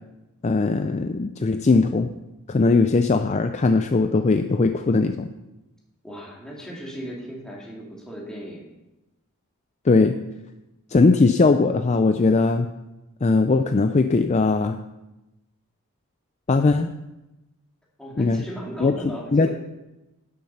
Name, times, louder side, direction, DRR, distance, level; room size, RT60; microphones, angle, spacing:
voice 1, 0.4-2.1 2.5-5.3 9.8-10.2 10.9-12.7 13.2-14.8 16.5-16.9 18.2-18.4 18.8-18.9 19.3-19.5, left 3 dB, 30° left, 8 dB, 0.4 m, -19 dB
voice 2, 6.0-8.6 18.0-19.5, equal, 5° left, -4 dB, 2.6 m, -37 dB
11.5 x 7.4 x 5.5 m, 0.98 s
head